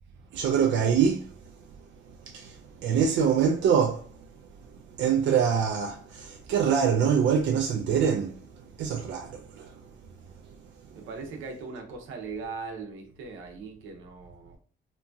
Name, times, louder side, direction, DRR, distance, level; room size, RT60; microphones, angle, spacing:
voice 1, 0.3-1.3 2.3-4.1 5.0-8.4 8.8-9.7, right 7 dB, 70° right, 0.4 m, -24 dB
voice 2, 10.9-14.6, right 4 dB, 85° right, 0.8 m, -39 dB
2.9 x 2.3 x 2.6 m
cardioid pair, 90°, 20 cm